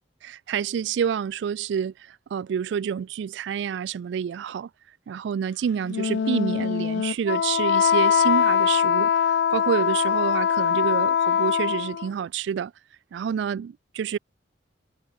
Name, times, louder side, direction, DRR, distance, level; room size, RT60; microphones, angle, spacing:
voice 1, 0.2-4.7 5.1-12.7 13.1-14.2, right 7 dB, 75° right, 0.3 m, -28 dB
Wind instrument woodwind instrument, 5.9-12.1, left 7 dB, 70° left, 0.3 m, -22 dB
head